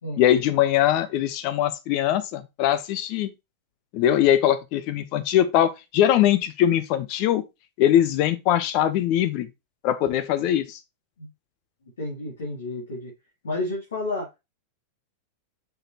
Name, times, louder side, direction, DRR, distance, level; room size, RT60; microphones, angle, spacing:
voice 1, 0.2-3.3 3.9-7.4 7.8-9.5 9.8-10.8, left 11 dB, 45° left, 0.7 m, -21 dB
voice 2, 12.0-13.1 13.4-14.3, left 2 dB, 65° left, 2.8 m, -30 dB
6.4 x 6.2 x 2.9 m
figure-of-eight pair, 90°, 0 cm